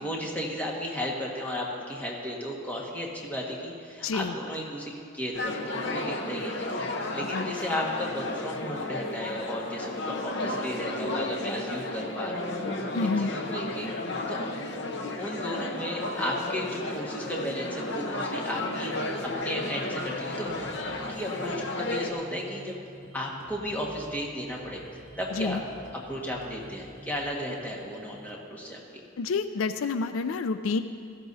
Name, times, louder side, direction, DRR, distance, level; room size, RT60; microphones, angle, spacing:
voice 1, 0.0-6.8 7.1-13.9 14.3-14.4 15.2-18.9 19.4-20.7 21.1-22.8 23.1-24.8 25.2-25.6 26.1-28.8, equal, 10° left, -3 dB, 1.5 m, -34 dB
voice 2, 4.0-4.3 7.3-7.5 12.9-13.3 25.3-25.6 29.2-30.8, left 4 dB, 80° left, 10 dB, 0.4 m, -28 dB
sound 1, 5.3-22.1, left 2 dB, 60° left, 0.9 m, -33 dB
sound 2, 19.0-28.3, equal, 45° right, 1.2 m, -49 dB
17.0 x 14.0 x 2.7 m, 2.4 s
head